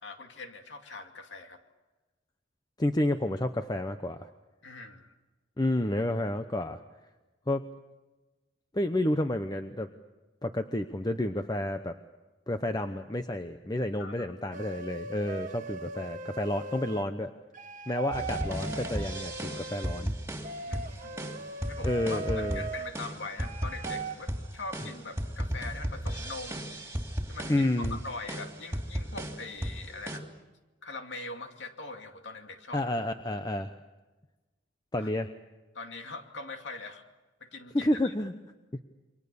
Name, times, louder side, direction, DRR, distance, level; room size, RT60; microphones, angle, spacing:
voice 1, 0.0-1.6 4.6-5.2 14.0-14.6 20.6-21.3 21.7-26.8 27.3-30.3 30.8-32.9 35.0-35.1 35.7-37.1 37.4-38.1, left 3 dB, 65° left, 5 dB, 2.5 m, -42 dB
voice 2, 2.8-4.3 5.6-6.8 7.5-7.6 8.7-9.9 10.4-12.0 12.5-17.3 17.9-20.1 21.8-22.6 27.5-28.0 32.7-33.7 34.9-35.3 37.7-38.3, left 1 dB, 20° left, 8 dB, 0.8 m, -30 dB
sound 1, 14.5-17.1 17.5-20.1 20.4-22.9 23.4-24.1, right 3 dB, 40° right, 1.3 m, -39 dB
sound 2, 18.1-30.2, equal, 10° right, 2.9 m, -35 dB
28.5 x 24.5 x 6.9 m, 1.2 s
head